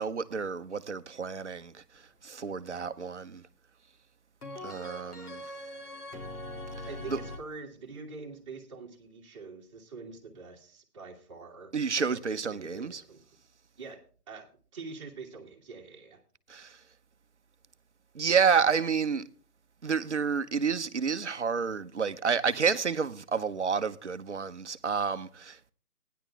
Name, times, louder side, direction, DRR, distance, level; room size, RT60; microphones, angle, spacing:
voice 1, 0.0-1.7 2.2-3.4 4.6-5.4 7.1-7.2 11.7-13.0 16.5-16.8 18.1-19.2 19.8-25.7, right 6 dB, 50° right, 0.7 m, -29 dB
sound 1, 4.4-7.4, left 1 dB, 70° left, 3.0 m, -41 dB
voice 2, 6.9-13.2 13.8-16.2, right 4 dB, 20° right, 1.7 m, -45 dB
15.0 x 10.0 x 3.5 m
figure-of-eight pair, 155°, 47 cm